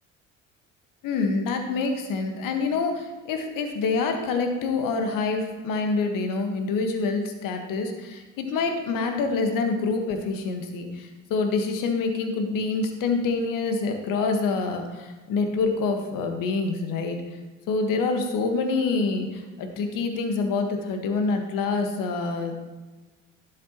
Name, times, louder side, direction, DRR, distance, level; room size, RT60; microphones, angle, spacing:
voice 1, 1.0-17.2 17.7-22.7, left 4 dB, 60° left, 5 dB, 1.6 m, -26 dB
12.0 x 7.4 x 3.0 m, 1.2 s
hypercardioid pair, 60°, 38 cm